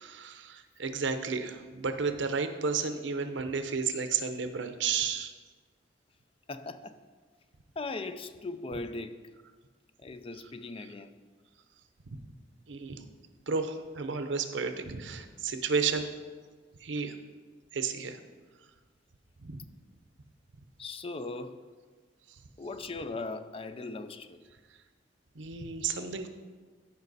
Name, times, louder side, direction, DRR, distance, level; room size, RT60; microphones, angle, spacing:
voice 1, 0.0-5.3 12.7-13.1 13.5-16.1 16.8-17.1 17.7-18.2 19.4-19.7 25.3-26.3, right 5 dB, 85° right, 8 dB, 0.7 m, -32 dB
voice 2, 6.5-7.0 7.8-9.2 10.0-11.1 20.8-21.6 22.6-24.4, left 3 dB, 30° left, 11 dB, 0.4 m, -39 dB
14.0 x 5.4 x 4.1 m, 1.5 s
head